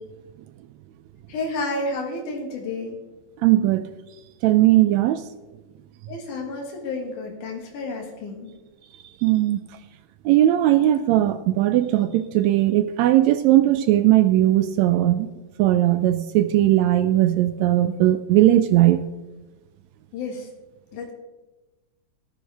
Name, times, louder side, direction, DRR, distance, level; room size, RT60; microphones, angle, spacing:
voice 1, 1.3-3.0 6.1-8.5 20.1-20.5 20.9-21.1, left 2 dB, 85° left, 1 dB, 3.2 m, -31 dB
voice 2, 3.4-3.8 4.4-5.2 9.2-9.6 10.3-15.3 15.6-19.0, right 14 dB, 80° right, 11 dB, 1.7 m, -18 dB
14.0 x 13.0 x 3.5 m, 1.1 s
omnidirectional pair, 3.5 m